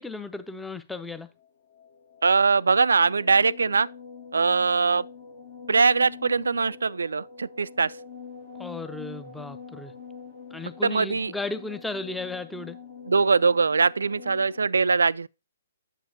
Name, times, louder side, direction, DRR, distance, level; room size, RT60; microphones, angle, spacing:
voice 1, 0.0-1.3 8.6-9.9 10.5-12.8, left 3 dB, 5° left, 0.6 m, -35 dB
sound 1, 1.3-14.7, left 6 dB, 45° left, 0.9 m, -45 dB
voice 2, 2.2-3.9 4.3-5.0 5.7-7.9 10.8-11.3 13.1-15.3, right 4 dB, 65° right, 0.3 m, -22 dB
9.1 x 7.4 x 2.8 m
figure-of-eight pair, 125°, 0 cm